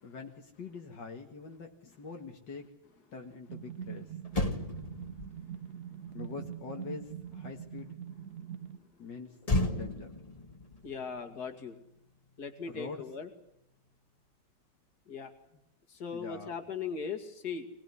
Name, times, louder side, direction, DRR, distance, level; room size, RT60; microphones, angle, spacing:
voice 1, 0.0-2.7 3.1-4.2 6.1-8.0 9.0-9.4 9.7-10.2 12.7-13.1 15.5-15.6 16.1-16.6, left 4 dB, 80° left, 2 dB, 2.6 m, -44 dB
sound 1, 3.5-8.8, right 9 dB, 55° right, 1.6 m, -43 dB
Motor vehicle (road), 3.8-3.9 4.2-7.8 9.4-12.0 12.3-12.6, left 2 dB, 20° left, 1.8 m, -36 dB
voice 2, 10.8-11.8 12.4-13.3 15.1-15.3 15.9-17.7, left 5 dB, 60° left, 6 dB, 2.9 m, -39 dB
24.5 x 19.5 x 9.8 m, 0.79 s
omnidirectional pair, 1.9 m